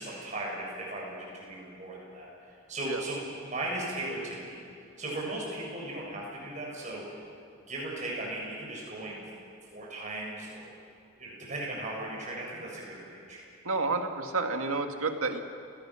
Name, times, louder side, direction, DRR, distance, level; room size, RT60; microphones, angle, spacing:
voice 1, 0.0-2.3 2.7-4.6 5.0-7.2 7.7-9.3 9.7-10.6 11.2-13.4, right 1 dB, 35° right, -3 dB, 7.0 m, -37 dB
voice 2, 13.6-15.4, right 3 dB, 80° right, 5 dB, 1.9 m, -30 dB
29.5 x 17.5 x 6.4 m, 2.5 s
head